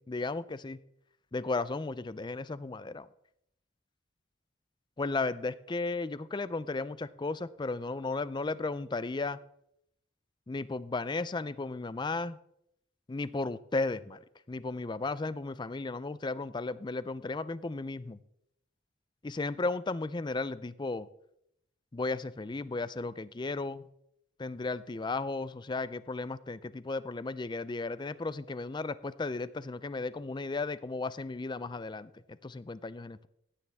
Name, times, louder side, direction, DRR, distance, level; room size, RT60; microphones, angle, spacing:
voice 1, 0.1-0.8 1.3-3.1 5.0-9.4 10.5-12.4 13.1-14.2 14.5-18.2 19.2-21.1 21.9-23.9 24.4-33.3, left 3 dB, 25° left, 16 dB, 0.4 m, -35 dB
15.5 x 9.7 x 3.5 m, 0.77 s
head